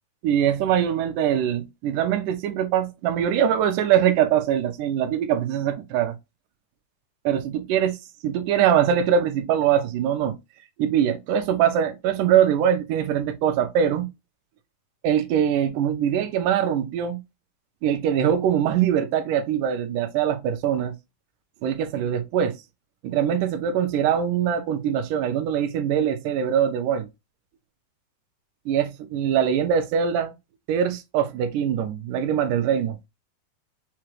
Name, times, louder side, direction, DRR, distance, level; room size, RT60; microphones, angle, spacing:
voice 1, 0.2-6.2 7.3-8.0 8.2-10.4 10.8-14.1 15.0-17.2 17.8-21.0 21.6-22.6 23.0-27.1 28.7-30.3 30.7-33.0, right 9 dB, 75° right, 1.9 m, -22 dB
5.9 x 2.2 x 3.1 m
omnidirectional pair, 4.2 m